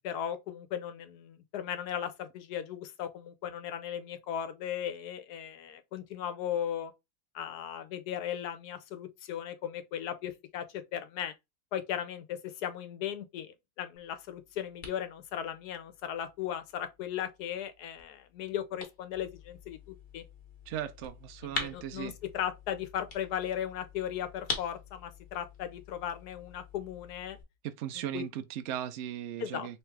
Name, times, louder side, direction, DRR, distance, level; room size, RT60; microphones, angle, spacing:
voice 1, 0.0-6.9 7.3-11.3 11.7-20.2 21.4-27.4 28.0-28.2 29.4-29.8, left 10 dB, 80° left, 1.3 m, -37 dB
sound 1, 13.9-27.4, left 3 dB, 40° left, 1.2 m, -45 dB
voice 2, 20.7-22.2 27.6-29.8, right 10 dB, 65° right, 0.7 m, -37 dB
3.4 x 3.2 x 3.2 m
omnidirectional pair, 1.7 m